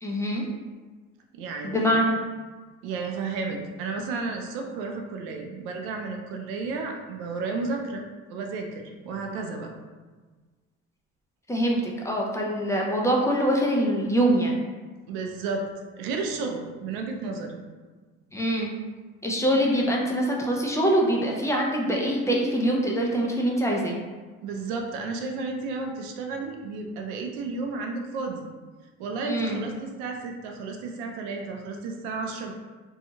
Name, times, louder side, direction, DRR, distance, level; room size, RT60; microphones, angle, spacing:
voice 1, 0.0-0.5 1.6-2.2 11.5-14.6 18.3-18.7 19.2-24.0 29.3-29.6, right 1 dB, 10° left, -2 dB, 0.4 m, -24 dB
voice 2, 1.3-1.9 2.8-8.0 8.3-9.7 15.1-15.7 16.0-17.6 24.4-28.5 29.0-32.5, right 4 dB, 85° right, 2 dB, 0.5 m, -32 dB
2.7 x 2.3 x 2.7 m, 1.4 s
supercardioid pair, 75°, 31 cm